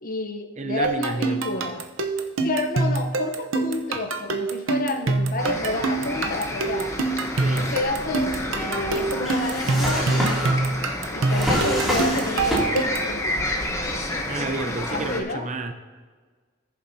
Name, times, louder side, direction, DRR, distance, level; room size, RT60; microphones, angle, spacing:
voice 1, 0.0-1.8 2.4-6.9 7.6-10.3 11.1-13.7 14.9-15.5, left 2 dB, 45° left, 6 dB, 0.8 m, -30 dB
voice 2, 0.6-1.5 7.4-7.7 14.3-15.7, right 3 dB, 35° right, 7 dB, 0.7 m, -30 dB
sound 1, 0.8-13.1, right 3 dB, 85° right, 0.8 m, -25 dB
sound 2, 5.4-15.2, left 1 dB, 15° left, 0.9 m, -30 dB
Drawer open or close, 7.8-13.0 13.3-14.1, equal, ahead, 2.6 m, -28 dB
18.5 x 7.2 x 2.7 m, 1.5 s
head